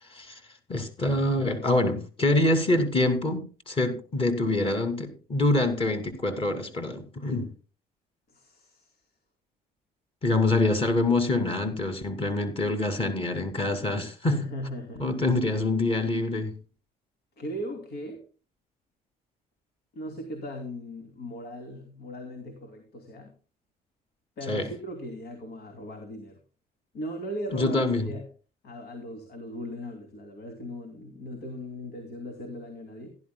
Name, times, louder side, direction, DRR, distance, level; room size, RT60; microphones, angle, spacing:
voice 1, 0.7-7.5 10.2-14.4 15.0-16.5 24.5-24.6 27.5-28.0, left 2 dB, 35° left, 2.6 m, -25 dB
voice 2, 8.3-9.0 14.3-15.2 17.4-18.2 19.9-23.3 24.4-26.4 26.9-28.3 28.6-33.2, equal, 75° left, 2.9 m, -38 dB
17.0 x 11.5 x 2.3 m
cardioid pair, 110°, 17 cm